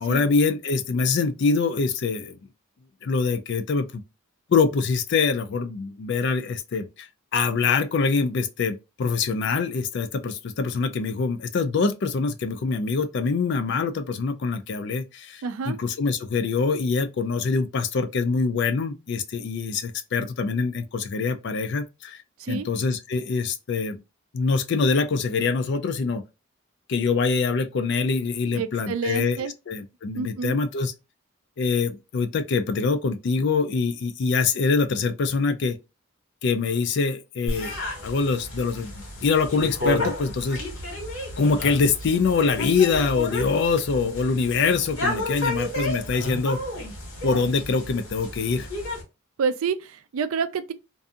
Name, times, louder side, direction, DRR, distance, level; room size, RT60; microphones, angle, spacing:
voice 1, 0.0-2.4 3.0-4.0 4.5-7.1 7.3-22.2 22.5-24.0 24.3-26.2 26.9-30.9 31.6-35.8 36.4-38.9 39.2-40.6 41.4-46.6 47.2-48.7, left 4 dB, 55° left, 0.3 m, -24 dB
voice 2, 15.4-15.8 22.4-22.7 28.5-29.5 30.2-30.6 49.4-50.7, right 5 dB, 75° right, 0.3 m, -28 dB
sound 1, 37.5-49.0, left 1 dB, 85° left, 1.4 m, -32 dB
2.6 x 2.5 x 2.3 m
head